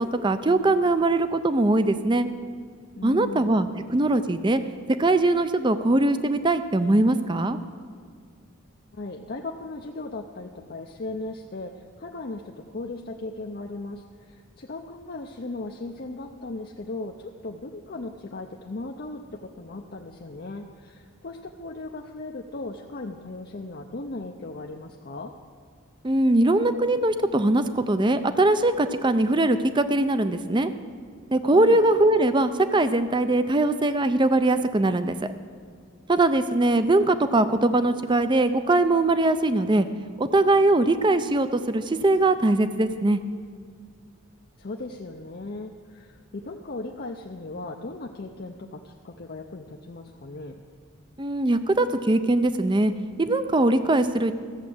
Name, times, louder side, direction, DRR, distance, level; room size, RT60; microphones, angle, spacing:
voice 1, 0.0-2.3 3.0-4.6 5.0-7.6 26.0-30.7 31.3-35.2 36.1-39.9 40.2-43.2 51.2-52.9 53.2-54.3, right 2 dB, 20° right, 11 dB, 0.5 m, -21 dB
voice 2, 3.0-3.6 8.9-25.3 31.5-31.8 44.6-50.6, left 2 dB, 45° left, 1 dB, 0.6 m, -37 dB
14.0 x 7.3 x 7.8 m, 2.1 s
head